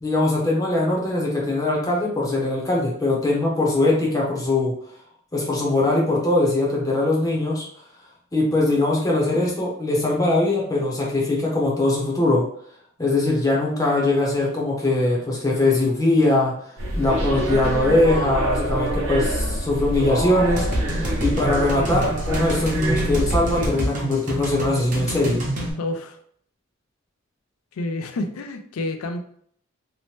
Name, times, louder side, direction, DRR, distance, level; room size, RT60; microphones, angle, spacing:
voice 1, 0.0-4.7 5.3-7.6 8.3-12.4 13.0-16.5 17.0-20.7 21.2-25.4, left 2 dB, 15° left, -3 dB, 0.6 m, -21 dB
sound 1, 16.8-23.7, right 1 dB, 70° right, 0.7 m, -26 dB
sound 2, 20.6-25.7, right 1 dB, 40° right, 0.8 m, -28 dB
voice 2, 25.8-26.2 27.7-29.2, left 2 dB, 90° left, 7 dB, 0.4 m, -29 dB
2.8 x 2.1 x 3.1 m, 0.63 s
head